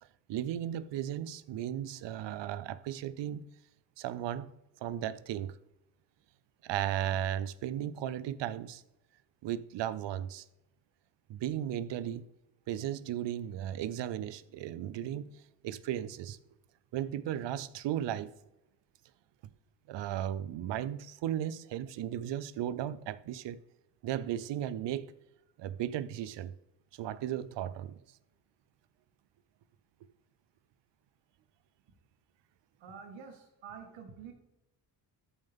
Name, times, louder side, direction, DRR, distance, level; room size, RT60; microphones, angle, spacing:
voice 1, 0.3-3.5 4.0-4.5 4.8-5.6 6.6-8.8 9.4-10.5 11.3-12.3 12.7-16.4 16.9-18.3 19.9-23.6 24.0-25.1 25.6-26.5 26.9-28.0, right 11 dB, 70° right, 0.6 m, -35 dB
voice 2, 32.8-34.3, right 6 dB, 85° right, 1.9 m, -48 dB
13.5 x 5.4 x 3.6 m
cardioid pair, 80°, 44 cm